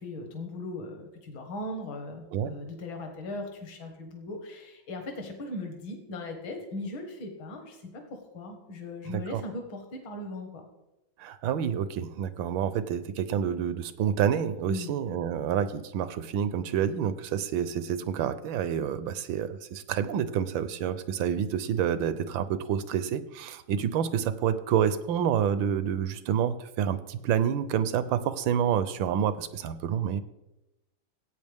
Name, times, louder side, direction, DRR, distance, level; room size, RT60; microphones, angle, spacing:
voice 1, 0.0-8.0 8.3-10.7 14.7-14.9, left 2 dB, 70° left, 3 dB, 2.3 m, -38 dB
voice 2, 9.1-9.4 11.2-30.2, right 8 dB, 75° right, 13 dB, 1.3 m, -28 dB
16.0 x 8.6 x 3.5 m, 0.95 s
omnidirectional pair, 2.2 m